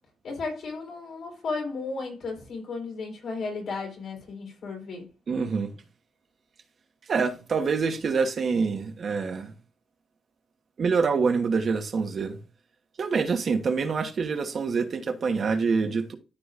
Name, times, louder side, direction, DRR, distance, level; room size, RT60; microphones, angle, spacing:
voice 1, 0.2-5.1, left 4 dB, 70° left, 3.9 m, -34 dB
voice 2, 5.3-5.7 7.1-9.5 10.8-12.4 13.0-16.2, right 5 dB, 50° right, 1.1 m, -26 dB
13.0 x 4.9 x 2.5 m
wide cardioid pair, 140°, 0 cm